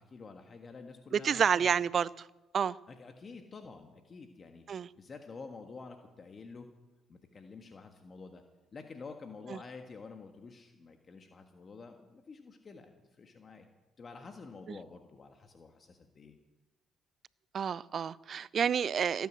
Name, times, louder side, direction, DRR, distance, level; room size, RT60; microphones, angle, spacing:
voice 1, 0.0-1.8 2.9-4.6 4.9-6.7 7.1-8.4 8.7-13.7 14.0-16.3, left 4 dB, 45° left, 1.6 m, -49 dB
voice 2, 1.1-2.1 2.5-2.8 4.7-4.9 17.5-19.3, right 7 dB, 55° right, 0.5 m, -29 dB
17.5 x 9.4 x 7.6 m
supercardioid pair, 60°, 0 cm